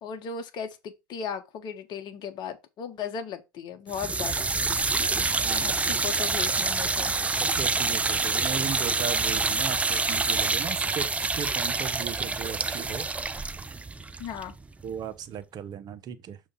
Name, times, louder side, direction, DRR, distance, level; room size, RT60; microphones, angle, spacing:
voice 1, 0.0-4.5 5.5-7.1 14.2-14.5, left 7 dB, 40° left, 1.3 m, -36 dB
sound 1, 3.9-15.0, right 3 dB, 10° right, 0.5 m, -27 dB
voice 2, 5.0-6.0 7.4-13.1 14.8-16.4, right 8 dB, 35° right, 0.9 m, -37 dB
6.5 x 3.2 x 5.6 m
hypercardioid pair, 85°, 11 cm